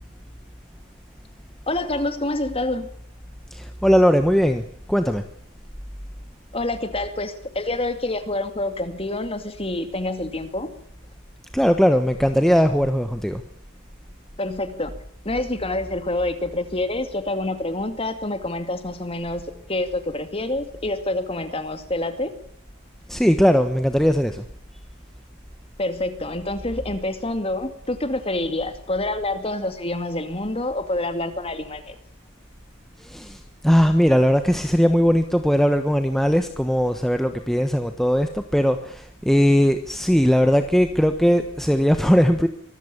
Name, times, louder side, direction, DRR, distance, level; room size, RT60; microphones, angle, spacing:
voice 1, 1.7-2.9 6.5-10.7 14.4-15.0 15.2-19.4 19.7-22.3 25.8-32.0, left 2 dB, 25° left, 9 dB, 2.4 m, -27 dB
voice 2, 3.5-4.6 4.9-5.2 11.5-13.4 23.1-24.4 33.0-42.5, equal, ahead, 7 dB, 1.1 m, -19 dB
24.5 x 14.5 x 8.7 m, 0.62 s
head